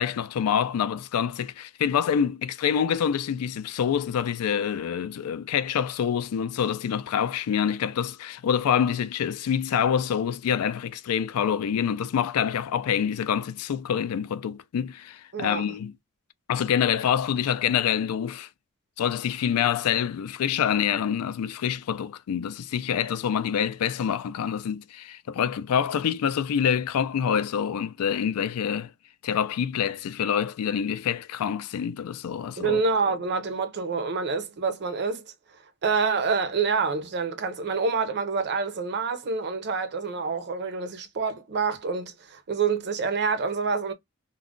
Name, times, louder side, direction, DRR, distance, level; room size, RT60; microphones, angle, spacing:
voice 1, 0.0-15.9 16.5-18.5 19.0-28.9 29.2-32.8, left 8 dB, 85° left, 0.3 m, -26 dB
voice 2, 15.3-15.6 32.6-35.2 35.8-43.9, right 5 dB, 50° right, 0.6 m, -27 dB
2.3 x 2.1 x 3.6 m
head